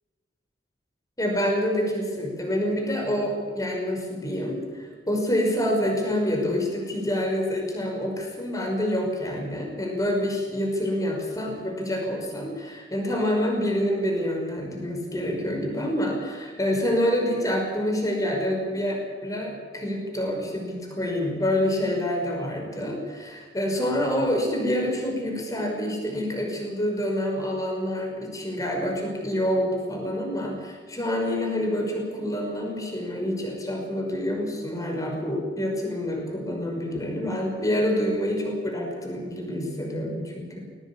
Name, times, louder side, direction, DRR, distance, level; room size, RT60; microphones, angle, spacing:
voice 1, 1.2-40.5, equal, 20° left, 1 dB, 5.7 m, -27 dB
20.0 x 19.0 x 8.7 m, 1.5 s
head